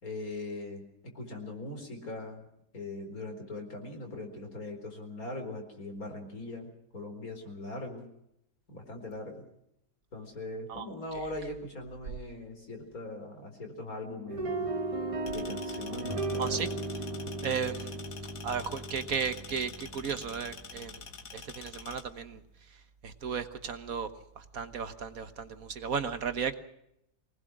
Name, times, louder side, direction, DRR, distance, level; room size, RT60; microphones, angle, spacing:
voice 1, 0.0-2.5 2.7-8.1 8.7-9.4 10.1-14.7 15.3-16.7, left 2 dB, 65° left, 4 dB, 4.8 m, -41 dB
sound 1, 14.3-20.5, right 2 dB, 25° right, 1.0 m, -36 dB
sound 2, 15.3-22.0, left 5 dB, 90° left, 2.4 m, -47 dB
voice 2, 17.4-18.0 18.4-20.9 21.3-22.4 23.0-24.1 24.4-26.5, right 6 dB, 60° right, 9 dB, 1.6 m, -34 dB
24.5 x 19.0 x 6.2 m, 0.80 s
omnidirectional pair, 1.7 m